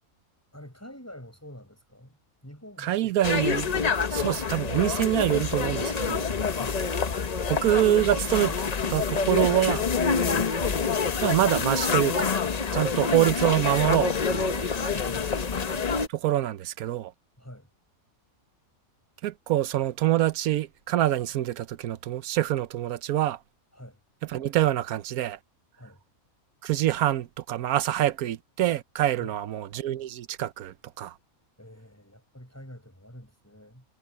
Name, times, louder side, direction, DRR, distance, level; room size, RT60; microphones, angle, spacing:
voice 1, 0.5-3.2 4.2-4.4 6.5-6.8 12.8-13.0 14.9-15.5 17.4-17.7 23.7-24.0 25.8-26.0 29.2-29.4 31.6-33.8, equal, 10° left, 7.8 m, -46 dB
voice 2, 2.8-3.7 4.1-6.3 7.5-8.5 8.9-9.8 11.2-12.4 12.7-14.7 16.1-17.1 19.2-23.4 24.3-25.4 26.6-31.1, right 13 dB, 90° right, 1.2 m, -25 dB
sound 1, 3.2-16.1, left 5 dB, 35° left, 0.7 m, -27 dB
omnidirectional pair, 1.5 m